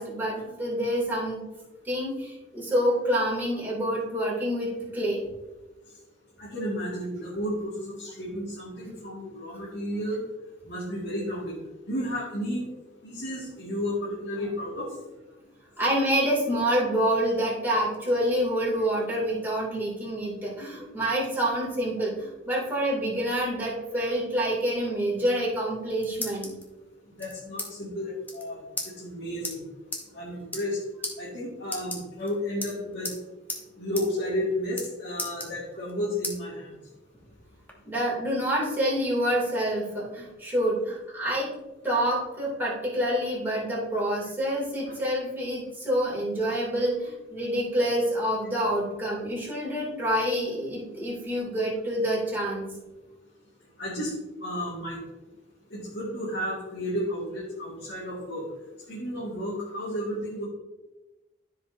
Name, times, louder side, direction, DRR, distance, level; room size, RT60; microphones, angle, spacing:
voice 1, 0.0-1.4 1.8-5.2 15.8-26.5 37.8-41.5 41.8-52.7, equal, 10° right, -6 dB, 2.7 m, -27 dB
voice 2, 6.4-10.2 10.7-11.6 11.9-12.6 13.0-14.9 27.2-28.6 29.0-29.6 30.1-30.8 31.2-33.1 33.8-36.7 44.9-45.0 53.8-54.1 54.4-55.0 55.7-58.4 58.9-60.4, equal, 55° left, -7 dB, 2.0 m, -32 dB
sound 1, 25.7-26.6 27.2-27.7 28.0-28.1 28.2-28.4 28.8-28.9 29.4-29.5 29.9-30.0 30.4-30.7 31.0-31.1 31.6-32.3 32.6-33.2 33.5-33.6 33.9-34.1 34.3-34.9 35.2-35.9 36.2-36.4 36.9-37.7, left 2 dB, 10° left, 1.0 m, -35 dB
13.5 x 5.0 x 2.7 m, 1.1 s
head